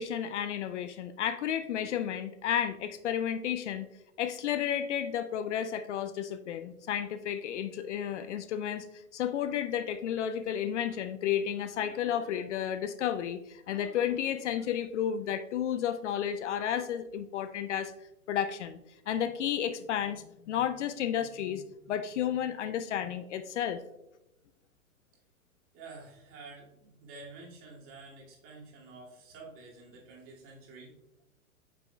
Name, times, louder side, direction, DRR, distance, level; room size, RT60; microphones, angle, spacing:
voice 1, 0.0-3.8 4.2-17.9 18.3-18.8 19.1-23.8, left 9 dB, 55° left, 12 dB, 0.5 m, -32 dB
voice 2, 25.7-30.9, right 3 dB, 30° right, -3 dB, 2.3 m, -49 dB
9.4 x 6.1 x 2.3 m, 0.89 s
hypercardioid pair, 125°, 43 cm